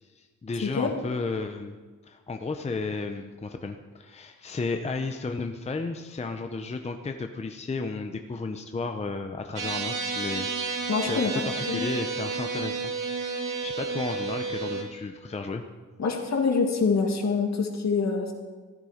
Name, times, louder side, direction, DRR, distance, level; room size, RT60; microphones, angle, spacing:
voice 1, 0.0-1.8 2.0-10.5 11.0-12.8 13.2-15.6, left 3 dB, 20° left, 5 dB, 0.6 m, -33 dB
sound 1, 9.6-14.8, right 4 dB, 85° right, 2.0 m, -31 dB
voice 2, 10.9-11.9 16.0-18.3, left 4 dB, 60° left, 2 dB, 2.1 m, -26 dB
14.5 x 12.5 x 5.0 m, 1.4 s
wide cardioid pair, 160°, 31 cm